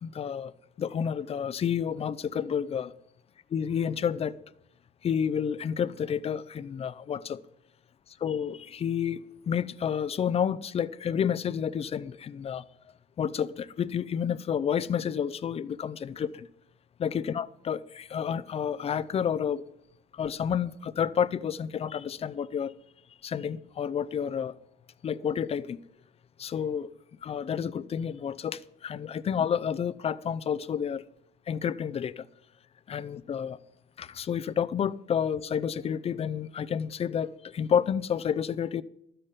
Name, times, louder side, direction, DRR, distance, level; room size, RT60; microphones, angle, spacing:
voice 1, 0.0-0.5 0.8-2.9 3.5-4.4 5.0-7.4 8.2-12.6 13.2-16.5 17.0-19.6 20.1-22.7 23.2-24.5 25.0-25.8 26.4-26.9 27.2-31.0 31.5-32.3 32.9-33.6 34.0-38.8, left 8 dB, 35° left, 0.5 m, -30 dB
12.5 x 10.0 x 5.2 m
cardioid pair, 110°, 17 cm